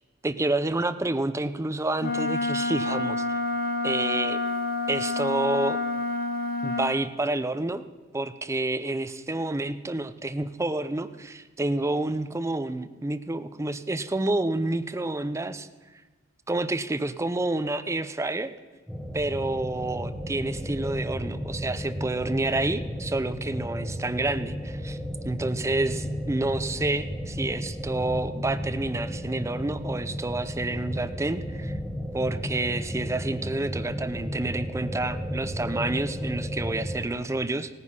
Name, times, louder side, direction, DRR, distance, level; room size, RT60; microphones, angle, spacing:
voice 1, 0.2-3.4 3.8-4.4 4.9-5.8 6.6-7.8 8.1-15.7 16.5-18.5 19.1-25.0 25.2-31.7 32.1-37.7, right 2 dB, 15° right, 11 dB, 0.5 m, -29 dB
Wind instrument woodwind instrument, 2.0-6.9, left 2 dB, 50° left, 0.9 m, -28 dB
sound 1, 18.9-37.0, equal, ahead, 1.2 m, -33 dB
16.5 x 9.5 x 5.6 m, 1.2 s
head